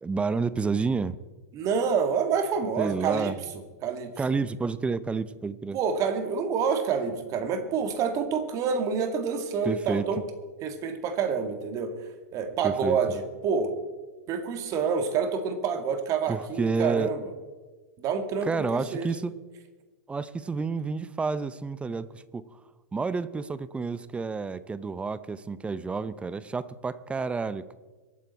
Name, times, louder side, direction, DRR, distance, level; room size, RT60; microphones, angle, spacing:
voice 1, 0.0-1.2 2.8-3.3 4.2-5.8 9.7-10.0 12.6-13.0 16.3-17.1 18.4-19.3 20.1-22.1 22.3-22.4 22.9-27.7, right 4 dB, 10° right, 16 dB, 0.7 m, -29 dB
voice 2, 1.5-3.3 3.8-4.1 5.7-10.2 10.6-11.9 12.3-13.7 14.3-17.3 18.0-19.1, right 6 dB, 35° right, 7 dB, 2.1 m, -27 dB
23.5 x 9.0 x 4.3 m, 1.3 s
hypercardioid pair, 105°, 9 cm